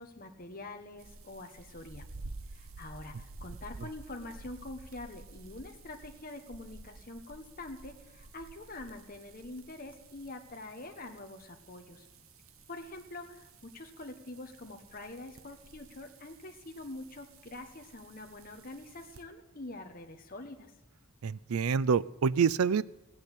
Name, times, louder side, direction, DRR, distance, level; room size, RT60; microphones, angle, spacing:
voice 1, 0.0-2.0 2.5-12.1 12.7-20.7, left 2 dB, 40° left, 4 dB, 1.2 m, -45 dB
sound 1, 1.0-19.2, right 3 dB, 70° right, 1.0 m, -52 dB
voice 2, 21.2-22.8, right 6 dB, 85° right, 20 dB, 0.4 m, -27 dB
16.0 x 6.8 x 9.9 m, 0.98 s
head